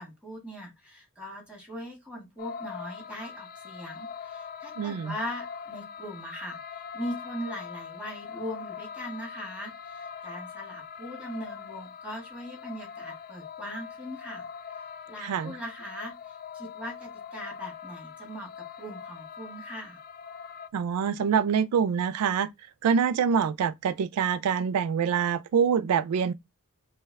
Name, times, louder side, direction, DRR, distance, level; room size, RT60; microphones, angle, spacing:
voice 1, 0.0-14.4 15.1-20.0, equal, 5° right, 1.5 m, -40 dB
sound 1, 2.4-20.7, left 6 dB, 40° left, 0.3 m, -42 dB
voice 2, 4.8-5.1 15.2-15.6 20.7-22.5 22.8-26.3, right 7 dB, 85° right, 0.3 m, -25 dB
5.4 x 2.2 x 3.3 m
head